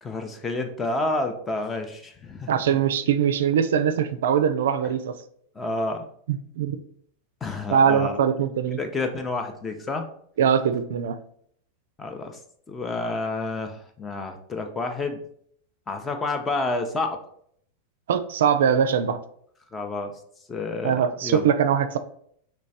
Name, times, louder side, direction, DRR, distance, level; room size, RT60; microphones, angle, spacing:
voice 1, 0.0-2.6 5.6-6.1 7.4-8.2 8.8-10.1 12.0-12.4 12.7-15.2 15.9-17.2 19.7-20.2 20.5-21.5, left 2 dB, 15° left, 6 dB, 0.5 m, -29 dB
voice 2, 2.5-5.2 6.3-6.8 7.7-8.8 10.4-11.2 18.1-19.2 20.8-22.0, right 8 dB, 60° right, 11 dB, 0.4 m, -22 dB
3.1 x 3.1 x 4.0 m, 0.65 s
figure-of-eight pair, 90°, 0 cm